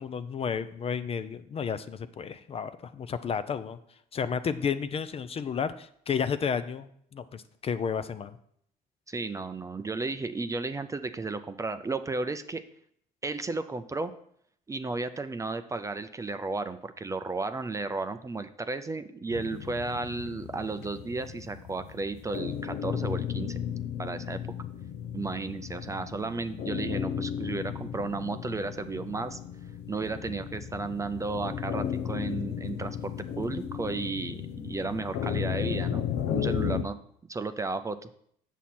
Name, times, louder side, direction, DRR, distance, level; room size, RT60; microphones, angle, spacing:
voice 1, 0.0-3.8 4.1-8.4, left 6 dB, 35° left, 12 dB, 0.5 m, -32 dB
voice 2, 9.1-12.6 13.2-14.1 14.7-23.6 24.0-24.4 25.1-29.4 29.9-36.0 36.3-37.0 37.3-38.1, right 3 dB, 20° right, 10 dB, 0.5 m, -33 dB
sound 1, 19.3-36.8, left 9 dB, 80° left, 0.7 m, -35 dB
7.6 x 7.2 x 4.2 m, 0.67 s
cardioid pair, 110°, 17 cm